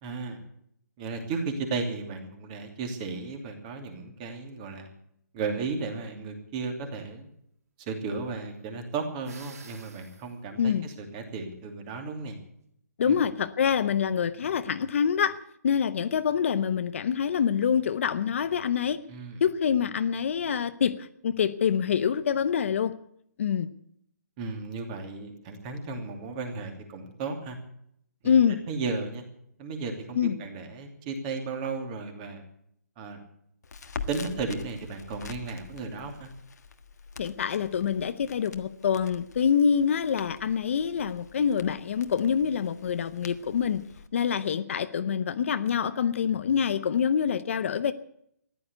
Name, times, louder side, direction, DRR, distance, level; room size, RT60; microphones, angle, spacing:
voice 1, 0.0-0.4 1.0-4.9 5.3-7.3 7.8-12.4 13.0-13.2 19.1-19.4 24.4-27.6 28.2-28.4 28.7-29.2 29.6-32.4 33.0-33.2 34.1-36.3, right 4 dB, 25° right, 2.8 m, -34 dB
sound 1, 9.2-10.3, right 5 dB, 65° right, 4.2 m, -50 dB
voice 2, 13.0-15.4 15.6-19.0 19.4-22.9 23.4-23.7 28.2-28.6 30.1-30.4 37.2-43.9 44.1-47.9, left 7 dB, 50° left, 0.8 m, -26 dB
Crackle, 33.6-44.1, left 5 dB, 75° left, 1.5 m, -45 dB
14.5 x 11.5 x 8.2 m
hypercardioid pair, 165°, 9 cm